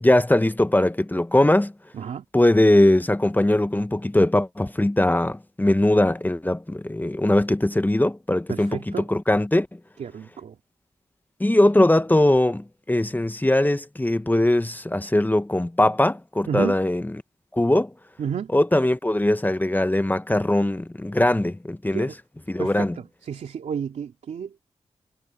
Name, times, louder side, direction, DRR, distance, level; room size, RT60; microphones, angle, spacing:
voice 1, 0.0-1.7 2.3-9.7 11.4-17.2 17.5-17.9 18.5-22.2 22.5-23.0, left 1 dB, 15° left, 1.1 m, -20 dB
voice 2, 8.5-9.1 10.0-10.5 16.5-16.7 18.2-18.5 21.9-22.1 22.6-22.9 23.3-24.6, right 7 dB, 85° right, 3.4 m, -31 dB
cardioid pair, 50°, 12 cm